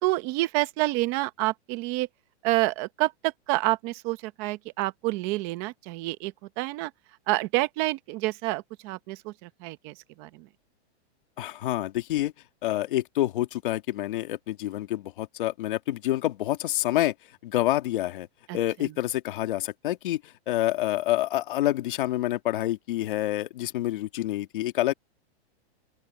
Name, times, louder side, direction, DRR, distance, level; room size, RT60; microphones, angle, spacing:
voice 1, 0.0-2.1 2.4-6.9 7.3-10.5 18.5-18.9, right 19 dB, 20° right, 0.9 m, -28 dB
voice 2, 11.4-12.3 12.6-17.1 17.4-18.3 18.5-24.9, left 14 dB, 50° left, 2.3 m, -27 dB
open air
supercardioid pair, 175°, 33 cm